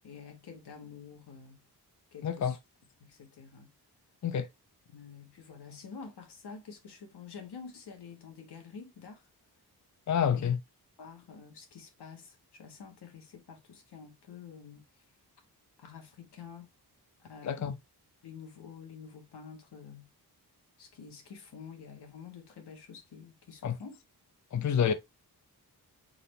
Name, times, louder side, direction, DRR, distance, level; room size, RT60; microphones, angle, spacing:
voice 1, 0.0-1.6 2.1-2.6 3.0-3.7 4.9-9.3 10.2-10.5 11.0-15.0 15.8-16.7 17.3-17.7 18.2-20.1 20.8-24.0 24.7-24.9, left 6 dB, 80° left, 1.5 m, -48 dB
voice 2, 2.2-2.5 4.2-4.5 10.1-10.6 17.4-17.7 23.6-23.8 24.5-24.9, left 8 dB, 45° left, 0.6 m, -28 dB
4.1 x 3.8 x 3.2 m
wide cardioid pair, 95°, 39 cm